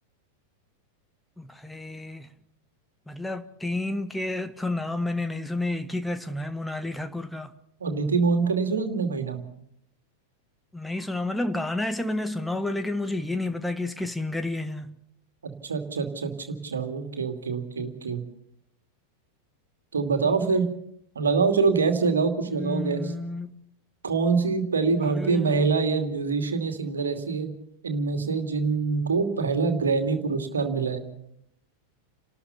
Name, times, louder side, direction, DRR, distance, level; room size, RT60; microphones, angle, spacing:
voice 1, 1.4-2.3 3.1-7.5 10.7-15.0 22.5-23.6 24.9-25.7, left 2 dB, 5° left, 1.1 m, -30 dB
voice 2, 7.8-9.4 15.4-18.2 19.9-20.7 21.1-23.0 24.0-27.5 27.8-31.0, right 4 dB, 70° right, 2.6 m, -25 dB
29.5 x 13.0 x 7.1 m
figure-of-eight pair, 90°, 0 cm